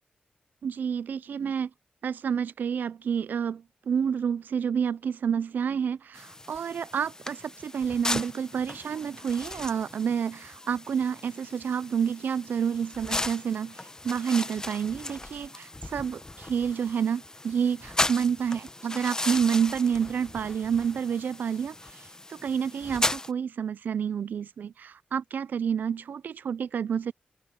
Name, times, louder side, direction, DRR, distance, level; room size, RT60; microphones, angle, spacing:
voice 1, 0.6-1.7 2.0-27.1, right 7 dB, 85° right, 0.4 m, -29 dB
sound 1, 6.1-23.3, left 2 dB, 20° left, 0.9 m, -36 dB
open air
cardioid pair, 75°, 3 cm